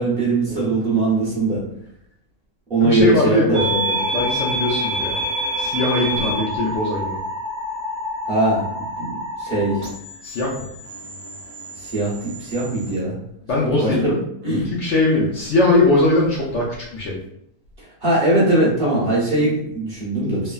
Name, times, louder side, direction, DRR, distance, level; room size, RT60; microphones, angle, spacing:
voice 1, 0.0-1.6 2.7-4.0 6.1-6.4 8.3-9.9 11.8-13.2 13.6-14.1 14.4-14.7 18.0-20.5, right 2 dB, 40° right, -7 dB, 1.0 m, -21 dB
voice 2, 2.8-3.7 4.1-5.2 5.6-7.2 10.2-10.5 13.5-14.2 14.7-16.7 16.9-17.2, left 2 dB, 65° left, -4 dB, 0.7 m, -20 dB
sound 1, 3.5-12.9, equal, 60° right, 0.4 m, -27 dB
3.1 x 2.1 x 2.3 m, 0.73 s
omnidirectional pair, 1.7 m